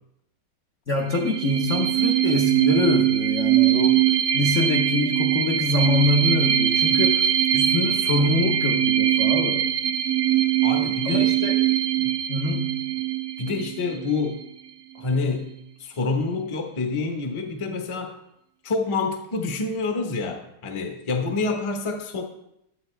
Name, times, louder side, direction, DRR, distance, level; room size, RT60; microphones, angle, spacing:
voice 1, 0.9-9.7 11.0-11.6 12.0-12.8, left 2 dB, 60° left, 1 dB, 0.8 m, -25 dB
sound 1, 1.0-14.4, right 11 dB, 75° right, 1.0 m, -22 dB
voice 2, 10.6-11.3 12.0-12.1 13.4-14.4 14.9-15.5 15.8-18.2 18.6-22.2, left 3 dB, 30° left, 4 dB, 0.5 m, -27 dB
11.5 x 8.8 x 3.3 m, 0.83 s
omnidirectional pair, 2.3 m